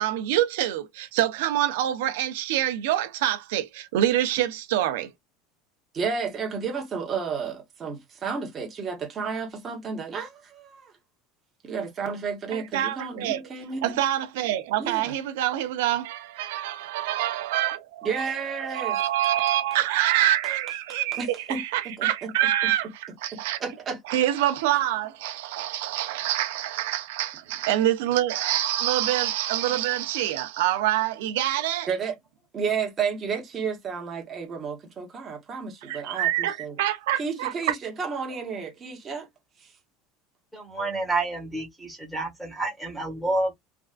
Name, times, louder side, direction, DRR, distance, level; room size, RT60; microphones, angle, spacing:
voice 1, 0.0-5.1 12.5-13.4 13.8-18.1 18.6-23.6 24.1-31.9 35.9-37.7, right 13 dB, 90° right, 0.6 m, -26 dB
voice 2, 5.9-10.9 11.6-14.0 14.8-15.2 18.0-19.0 21.1-22.3 23.3-24.0 31.9-32.2 32.5-36.7 37.2-39.3 39.6-39.7, right 5 dB, 20° right, 1.0 m, -32 dB
voice 3, 40.5-43.5, right 2 dB, ahead, 1.1 m, -29 dB
3.4 x 2.5 x 2.4 m
cardioid pair, 175°, 0 cm